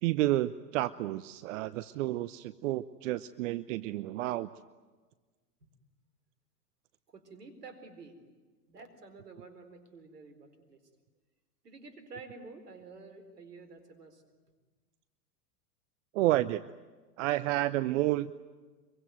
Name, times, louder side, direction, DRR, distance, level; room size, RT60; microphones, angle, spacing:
voice 1, 0.0-4.5 16.1-16.6 17.2-18.3, right 16 dB, 55° right, 15 dB, 0.8 m, -30 dB
voice 2, 7.1-8.2 8.7-10.8 11.6-14.2, right 4 dB, 80° right, 9 dB, 4.4 m, -50 dB
25.5 x 23.5 x 9.3 m, 1.3 s
hypercardioid pair, 95°, 47 cm